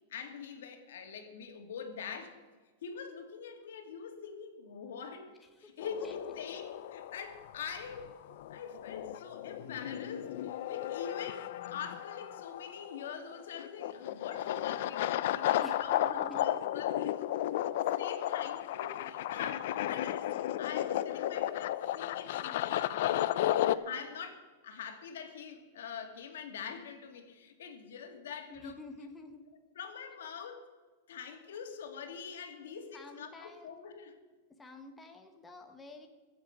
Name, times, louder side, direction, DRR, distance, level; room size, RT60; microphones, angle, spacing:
voice 1, 0.1-2.4 2.8-5.3 5.6-8.1 8.5-17.2 17.6-20.3 20.6-28.8 29.7-30.6 31.1-34.2, left 6 dB, 85° left, 5 dB, 2.5 m, -44 dB
voice 2, 5.6-6.1 15.6-16.5 28.5-29.4 32.7-33.7 34.6-36.1, left 2 dB, 10° left, 4 dB, 1.0 m, -49 dB
sound 1, 5.8-23.8, left 13 dB, 55° left, 0.6 m, -34 dB
22.5 x 7.8 x 6.0 m, 1.4 s
supercardioid pair, 170°, 0 cm